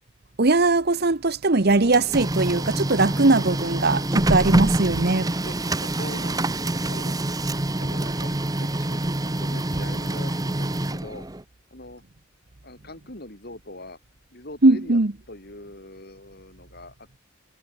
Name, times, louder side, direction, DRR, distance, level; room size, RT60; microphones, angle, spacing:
voice 1, 0.4-5.3 14.6-15.1, right 2 dB, 50° right, 1.0 m, -20 dB
Printer, 1.6-11.4, right 1 dB, 15° right, 1.0 m, -26 dB
voice 2, 5.4-6.5 6.9-7.1 7.8-8.3 8.6-11.2 11.7-12.0 12.6-14.0 14.3-15.0 15.3-17.2, left 1 dB, 50° left, 5.3 m, -42 dB
head